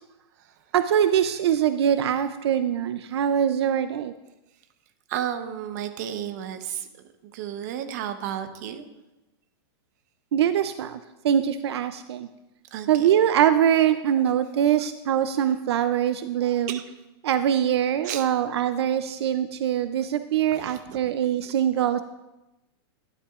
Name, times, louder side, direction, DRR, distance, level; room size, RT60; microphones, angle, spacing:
voice 1, 0.7-4.1 10.3-11.0 11.2-12.3 12.9-16.8 17.2-22.0, right 10 dB, 80° right, 11 dB, 0.5 m, -23 dB
voice 2, 5.1-6.9 7.2-8.9 12.7-13.1 16.7-16.8 18.0-18.3 20.5-21.0 21.4-21.5, right 10 dB, 40° right, 7 dB, 0.9 m, -33 dB
12.0 x 11.0 x 2.4 m, 1.0 s
supercardioid pair, 170°, 14 cm